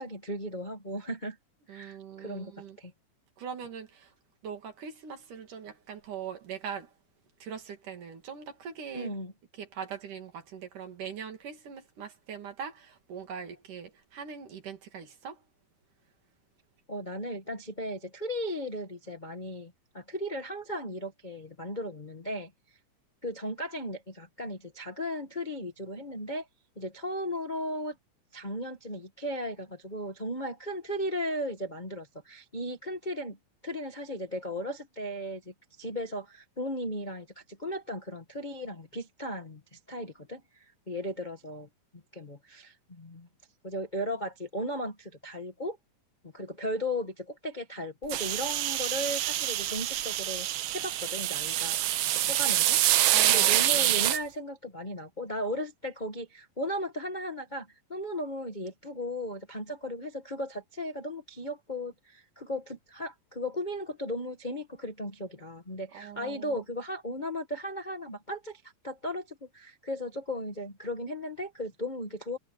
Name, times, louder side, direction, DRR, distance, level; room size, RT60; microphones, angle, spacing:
voice 1, 0.0-1.4 1.7-2.9 8.9-9.3 16.9-22.5 23.2-26.5 26.7-28.0 28.3-33.4 33.6-41.7 41.9-43.3 43.6-45.8 46.3-52.8 53.3-72.4, equal, 60° left, 0.4 m, -36 dB
voice 2, 1.7-2.8 3.4-4.1 4.4-6.9 7.4-9.2 9.5-15.4 50.8-50.9 53.1-54.0 65.9-66.6, right 7 dB, 60° right, 4.1 m, -41 dB
sound 1, 48.1-54.2, right 13 dB, 90° right, 3.0 m, -26 dB
omnidirectional pair, 4.3 m